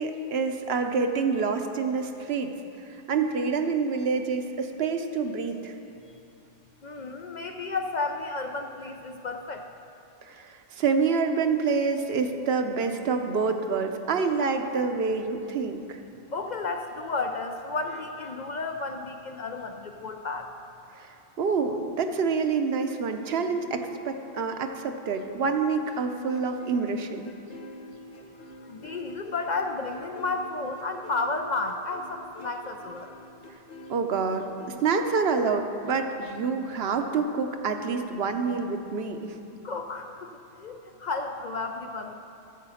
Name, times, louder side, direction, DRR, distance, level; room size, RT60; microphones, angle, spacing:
voice 1, 0.0-2.5 3.1-5.7 10.3-16.0 20.9-27.3 33.9-39.4, right 5 dB, 70° right, 6 dB, 0.9 m, -27 dB
voice 2, 6.8-9.6 16.3-20.5 28.7-33.1 39.6-40.3 40.6-42.1, left 3 dB, 55° left, 4 dB, 0.5 m, -32 dB
sound 1, 25.8-34.7, left 1 dB, 90° left, 1.3 m, -46 dB
9.7 x 6.6 x 7.0 m, 2.8 s
omnidirectional pair, 1.1 m